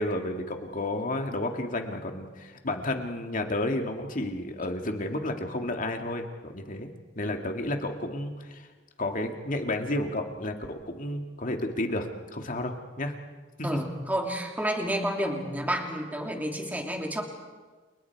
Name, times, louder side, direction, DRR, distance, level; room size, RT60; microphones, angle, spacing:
voice 1, 0.0-6.9 7.2-8.7 9.0-13.1 13.6-13.7, left 1 dB, 45° left, 4 dB, 2.2 m, -31 dB
voice 2, 13.6-17.2, equal, 10° right, 2 dB, 3.0 m, -30 dB
29.5 x 29.0 x 4.7 m, 1.3 s
head